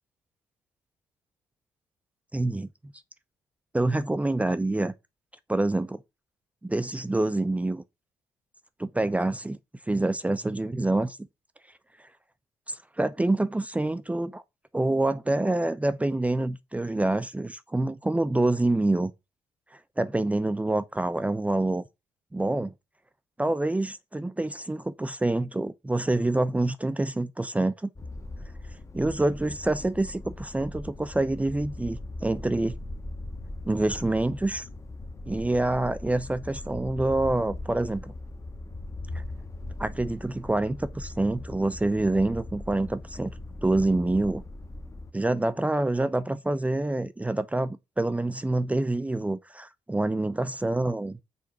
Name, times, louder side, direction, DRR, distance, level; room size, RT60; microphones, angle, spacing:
voice 1, 2.3-2.7 3.7-4.9 5.5-6.0 6.6-7.8 8.8-9.6 9.9-11.2 12.7-14.4 14.7-19.1 20.0-21.8 22.3-22.7 23.4-27.9 28.9-32.8 33.7-34.7 35.3-38.1 39.1-39.2 39.8-43.3 43.6-44.4 45.1-51.2, right 2 dB, 10° right, 0.6 m, -26 dB
sound 1, 28.0-45.1, left 2 dB, 25° left, 1.0 m, -40 dB
6.8 x 4.6 x 5.8 m
figure-of-eight pair, 40°, 12 cm